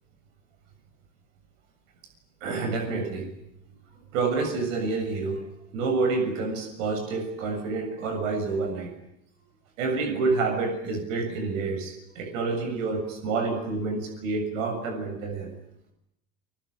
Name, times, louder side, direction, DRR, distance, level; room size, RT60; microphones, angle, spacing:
voice 1, 2.4-3.3 4.1-5.4 5.7-8.9 9.8-15.5, right 4 dB, 55° right, 6 dB, 7.1 m, -28 dB
29.5 x 21.5 x 8.9 m, 0.79 s
figure-of-eight pair, 75°, 45 cm